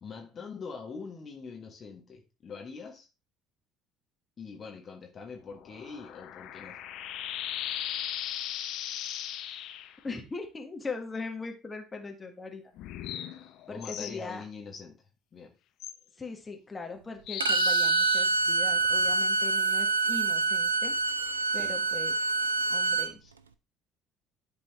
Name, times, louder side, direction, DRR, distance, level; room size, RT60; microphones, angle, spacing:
voice 1, 0.0-3.1 4.4-6.8 13.7-15.5 21.5-21.8 23.2-23.3, left 5 dB, 40° left, 1.5 m, -43 dB
sound 1, 5.5-10.0 12.8-14.2 15.8-15.9 17.3-19.2, left 10 dB, 55° left, 0.7 m, -37 dB
voice 2, 10.0-12.7 13.7-14.4 16.2-21.0 21.5-22.2 22.7-23.2, left 3 dB, 20° left, 1.6 m, -40 dB
Bowed string instrument, 17.4-23.1, right 3 dB, 85° right, 0.4 m, -26 dB
11.0 x 4.0 x 3.4 m
figure-of-eight pair, 55°, 0 cm